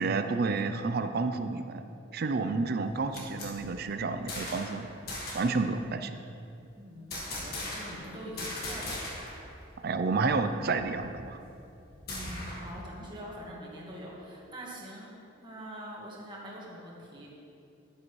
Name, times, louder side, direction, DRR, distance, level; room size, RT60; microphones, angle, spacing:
voice 1, 0.0-1.8 2.1-4.9 5.3-6.2 9.8-11.4, right 3 dB, 50° right, 8 dB, 0.4 m, -30 dB
sound 1, 2.8-4.8 5.1-5.6 7.1-8.1 8.4-9.4 9.7-9.8 10.2-12.8, left 1 dB, 50° left, 1.8 m, -39 dB
voice 2, 6.8-9.3 12.1-15.1 15.4-17.3, equal, 25° right, -4 dB, 1.6 m, -44 dB
10.5 x 9.5 x 3.2 m, 2.6 s
head